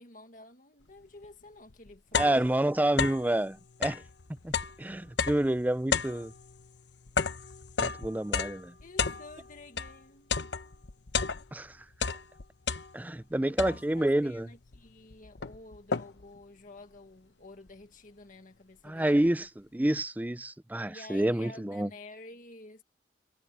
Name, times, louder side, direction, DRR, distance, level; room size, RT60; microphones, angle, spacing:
voice 1, 0.0-2.4 8.8-10.8 13.4-19.3 20.9-22.8, left 2 dB, 50° left, 1.8 m, -51 dB
sound 1, 1.2-1.3 1.7-3.3 3.7-10.0 10.3-11.7 11.9-13.2 13.6-14.1 14.7-14.8 15.1-16.4, left 5 dB, 85° left, 0.9 m, -32 dB
voice 2, 2.1-4.0 4.4-4.5 4.8-6.3 7.8-8.7 11.5-11.7 12.9-14.5 18.9-21.9, right 1 dB, 10° right, 0.4 m, -28 dB
head